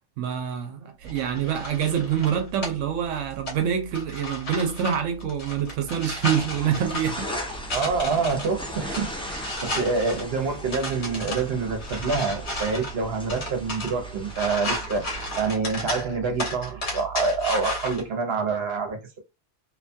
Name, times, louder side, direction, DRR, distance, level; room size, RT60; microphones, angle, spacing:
voice 1, 0.2-7.3, right 8 dB, 90° right, 0.9 m, -26 dB
sound 1, 1.0-18.0, equal, 65° left, 1.4 m, -34 dB
sound 2, 6.3-15.4, left 1 dB, 10° left, 0.3 m, -38 dB
voice 2, 7.7-19.2, right 4 dB, 60° right, 0.9 m, -27 dB
2.7 x 2.2 x 2.5 m
omnidirectional pair, 1.2 m